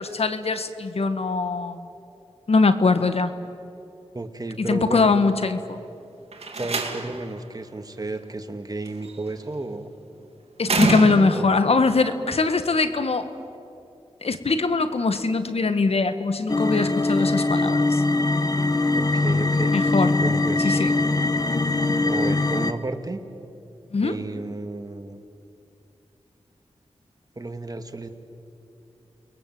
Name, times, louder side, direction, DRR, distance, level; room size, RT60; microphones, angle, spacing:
voice 1, 0.0-1.8 2.5-3.3 4.6-5.8 10.6-13.3 14.2-18.0 19.7-20.2 20.6-20.9 23.9-24.2, left 4 dB, 65° left, 10 dB, 1.7 m, -22 dB
voice 2, 4.1-5.1 6.5-9.9 11.3-11.6 18.9-19.8 20.2-20.7 22.1-23.2 24.0-25.2 27.4-28.1, right 2 dB, 35° right, 6 dB, 2.2 m, -32 dB
Slam, 6.3-7.3 8.9-9.3 10.6-11.6, right 3 dB, 65° right, 2.6 m, -26 dB
sound 1, 16.5-22.7, left 2 dB, 35° left, 1.3 m, -22 dB
29.5 x 21.0 x 7.9 m, 2.7 s
cardioid pair, 45°, 11 cm